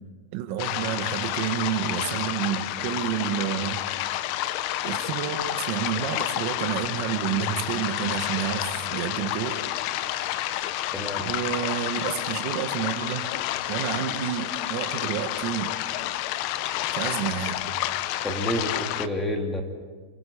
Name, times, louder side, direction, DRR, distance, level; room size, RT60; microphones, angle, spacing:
voice 1, 0.3-3.8 4.8-9.6 11.2-13.3 13.7-15.7 16.9-17.7, right 10 dB, 40° right, 6 dB, 1.4 m, -29 dB
sound 1, 0.6-19.1, left 14 dB, 40° left, 0.7 m, -30 dB
voice 2, 10.9-11.3 18.2-19.6, equal, 5° left, 3 dB, 2.1 m, -29 dB
28.5 x 18.0 x 5.2 m, 1.5 s
supercardioid pair, 170°, 0 cm